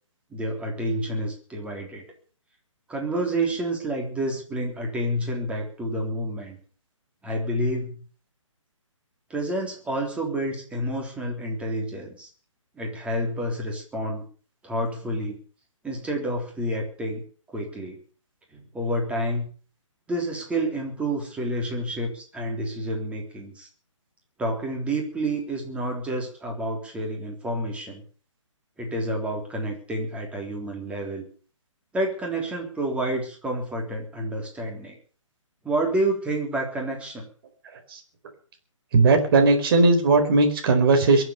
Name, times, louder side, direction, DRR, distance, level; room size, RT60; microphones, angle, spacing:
voice 1, 0.3-2.0 2.9-6.6 7.2-8.0 9.3-12.3 12.7-14.2 14.6-15.4 15.8-17.2 17.5-18.0 18.5-19.5 20.1-23.7 24.4-28.0 28.8-31.2 31.9-35.0 35.6-37.3, right 1 dB, 5° right, 1 dB, 3.7 m, -29 dB
voice 2, 38.9-41.2, right 3 dB, 45° right, 5 dB, 4.5 m, -18 dB
23.0 x 7.9 x 6.8 m, 0.42 s
figure-of-eight pair, 140°, 17 cm